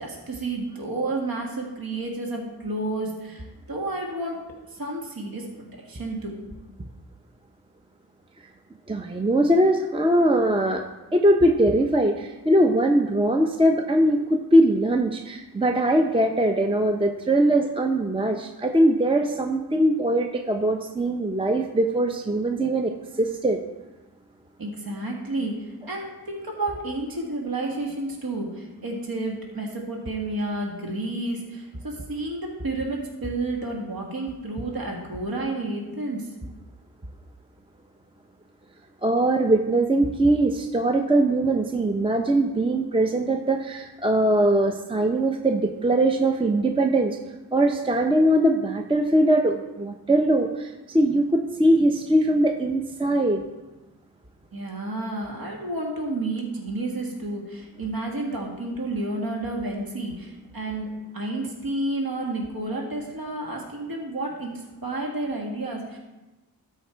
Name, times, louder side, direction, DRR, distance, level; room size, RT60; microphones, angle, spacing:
voice 1, 0.0-4.4 4.7-5.5 5.8-6.4 24.6-36.3 54.5-60.9 61.1-66.0, right 2 dB, 65° right, -1 dB, 1.7 m, -31 dB
voice 2, 8.9-10.8 11.1-23.6 39.0-47.2 47.5-53.5, right 1 dB, 15° right, 4 dB, 0.6 m, -21 dB
13.0 x 4.6 x 4.5 m, 1.1 s
wide cardioid pair, 65°, 38 cm